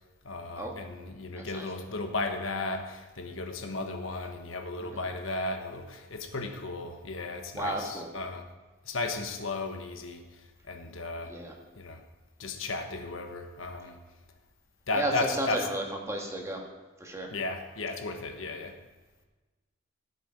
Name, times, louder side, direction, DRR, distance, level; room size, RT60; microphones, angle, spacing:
voice 1, 0.2-8.4 8.8-10.2 10.6-11.4 11.8-12.0 12.4-14.0 14.9-15.7 17.3-18.8, left 3 dB, 80° left, 1.3 m, -35 dB
voice 2, 1.3-1.7 4.8-4.9 7.5-8.1 11.3-11.5 14.9-16.6 17.0-17.3, right 1 dB, 15° right, 1.8 m, -33 dB
16.0 x 6.8 x 5.1 m
head